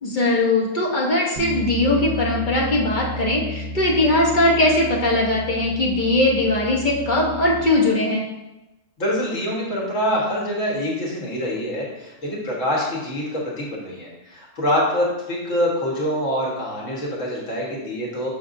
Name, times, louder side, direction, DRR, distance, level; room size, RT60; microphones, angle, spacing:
voice 1, 0.0-8.2, left 2 dB, 40° left, -2 dB, 1.0 m, -20 dB
Bass guitar, 1.4-7.6, equal, 25° right, 1.0 m, -32 dB
voice 2, 9.0-18.3, equal, 75° left, -4 dB, 1.8 m, -25 dB
6.5 x 5.7 x 2.6 m, 1.0 s
omnidirectional pair, 1.3 m